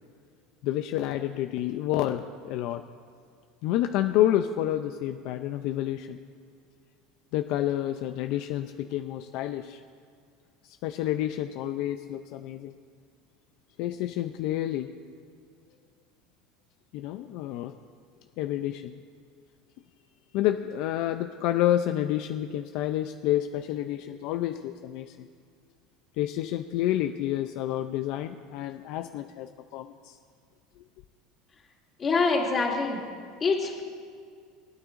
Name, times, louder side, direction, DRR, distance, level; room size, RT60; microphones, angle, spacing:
voice 1, 0.6-2.8 3.6-6.2 7.3-9.8 10.6-12.7 13.8-14.9 16.9-17.7 18.4-18.9 20.3-25.3 26.2-30.2, left 12 dB, 65° left, 7 dB, 0.4 m, -29 dB
voice 2, 32.0-33.0 33.4-33.8, left 4 dB, 25° left, -3 dB, 2.4 m, -25 dB
22.0 x 9.8 x 2.6 m, 2.2 s
supercardioid pair, 135°, 0 cm